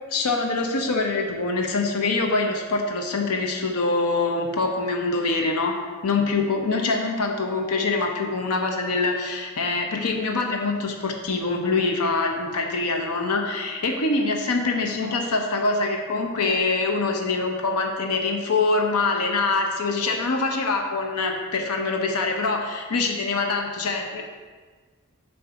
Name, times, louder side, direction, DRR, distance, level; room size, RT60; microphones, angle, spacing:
voice 1, 0.1-5.8 6.0-24.2, left 3 dB, 75° left, 2 dB, 0.7 m, -24 dB
7.6 x 2.6 x 5.6 m, 1.4 s
head